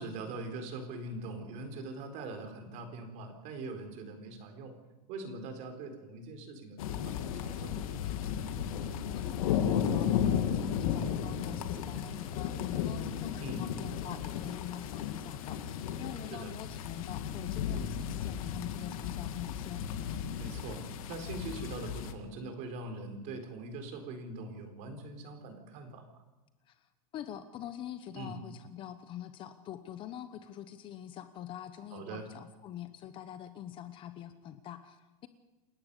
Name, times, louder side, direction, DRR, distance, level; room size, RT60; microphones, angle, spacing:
voice 1, 0.0-4.7 5.1-8.1 13.4-13.7 16.3-16.5 20.4-26.1 28.1-28.4 31.9-32.3, right 2 dB, 40° right, 6 dB, 4.1 m, -42 dB
sound 1, 6.8-22.1, left 8 dB, 65° left, 2.2 m, -34 dB
voice 2, 9.1-19.8 26.7-26.8 27.1-35.3, left 11 dB, 25° left, 11 dB, 1.0 m, -44 dB
29.0 x 11.5 x 8.3 m, 1.1 s
supercardioid pair, 160°, 19 cm